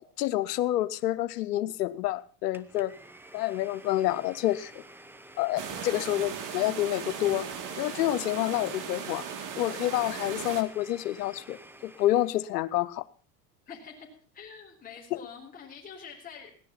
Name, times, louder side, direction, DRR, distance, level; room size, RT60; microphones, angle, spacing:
voice 1, 0.2-2.9 3.3-4.8 5.4-7.5 7.8-9.2 9.6-11.6 11.8-13.1, left 14 dB, 90° left, 0.9 m, -28 dB
Domestic sounds home sounds, 2.5-12.5, right 1 dB, 5° right, 1.0 m, -50 dB
sound 1, 5.6-10.6, right 7 dB, 40° right, 2.4 m, -38 dB
voice 2, 5.7-6.1 13.7-14.1 14.3-16.5, left 6 dB, 20° left, 3.9 m, -46 dB
17.0 x 11.0 x 5.8 m
supercardioid pair, 120°, 46 cm